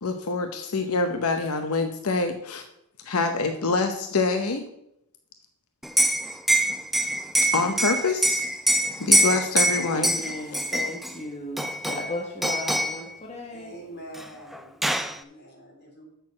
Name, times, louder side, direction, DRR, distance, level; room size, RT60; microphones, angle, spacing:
voice 1, 0.0-2.6 3.0-4.7 7.5-8.4 9.0-10.1, left 3 dB, 85° left, 7 dB, 0.8 m, -25 dB
Liquid, 5.8-11.1 11.6-12.1 12.4-13.0 14.2-14.3 14.5-15.2, right 1 dB, ahead, 0.3 m, -24 dB
voice 2, 9.9-13.7, left 2 dB, 30° left, 1 dB, 1.2 m, -35 dB
voice 3, 13.5-16.0, right 1 dB, 50° left, 0 dB, 2.7 m, -45 dB
6.8 x 6.2 x 7.3 m, 0.79 s
head